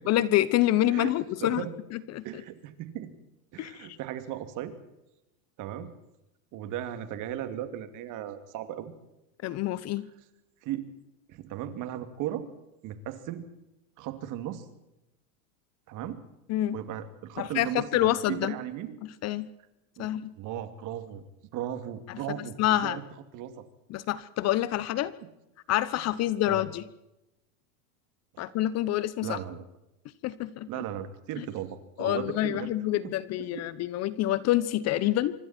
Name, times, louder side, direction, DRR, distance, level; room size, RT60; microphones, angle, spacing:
voice 1, 0.1-1.7 1.9-2.2 3.6-3.9 9.4-10.1 16.5-16.8 17.4-18.5 19.2-19.5 20.0-20.3 22.1-22.2 22.6-23.0 23.9-25.1 25.7-26.9 28.4-29.4 30.2-30.8 31.4-31.5 32.0-35.3, left 14 dB, 35° left, 17 dB, 1.0 m, -27 dB
voice 2, 0.9-1.8 2.2-3.2 3.5-4.7 5.6-5.9 6.5-8.9 10.6-10.8 11.3-12.5 12.8-13.5 14.0-14.7 15.9-16.2 16.7-19.0 20.0-20.1 20.4-21.2 21.5-23.0 23.3-23.7 26.4-26.6 28.3-28.4 29.2-29.6 30.7-32.7 33.0-33.7 35.0-35.1, right 11 dB, 45° right, 10 dB, 2.7 m, -36 dB
25.5 x 24.5 x 4.5 m, 0.91 s
supercardioid pair, 130°, 43 cm